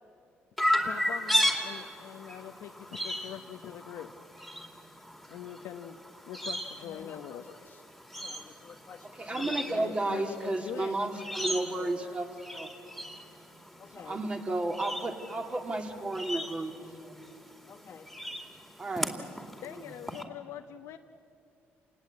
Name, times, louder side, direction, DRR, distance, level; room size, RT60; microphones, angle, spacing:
Chirp tweet, 0.6-20.2, equal, ahead, 2.5 m, -36 dB
voice 1, 0.8-4.1 5.3-6.0 6.2-7.6 9.4-11.4 11.7-12.2 19.6-21.0, left 10 dB, 85° left, 5 dB, 0.9 m, -43 dB
voice 2, 6.8-7.8 8.2-10.1 13.8-14.2 17.7-18.1, left 6 dB, 50° left, -1 dB, 1.6 m, -50 dB
voice 3, 9.2-12.7 14.1-16.7 17.0-17.2 18.8-19.2, right 2 dB, 25° right, 4 dB, 2.6 m, -32 dB
28.0 x 19.5 x 8.5 m, 2.5 s
cardioid pair, 95°, 4 cm